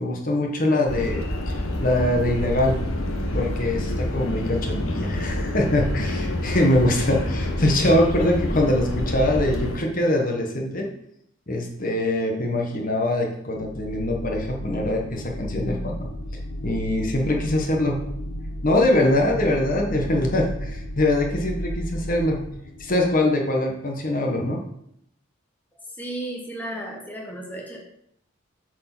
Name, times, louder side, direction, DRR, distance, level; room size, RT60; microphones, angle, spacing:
voice 1, 0.0-2.8 3.3-10.9 11.5-16.1 16.6-18.0 18.6-22.4 22.8-24.6, left 1 dB, 40° left, 1 dB, 1.3 m, -23 dB
sound 1, 0.9-9.8, left 1 dB, 70° left, 1.2 m, -27 dB
sound 2, 13.6-23.2, equal, 90° left, 2.0 m, -34 dB
voice 2, 25.9-27.8, right 1 dB, 10° left, -1 dB, 1.2 m, -34 dB
8.1 x 4.8 x 6.1 m, 0.74 s
head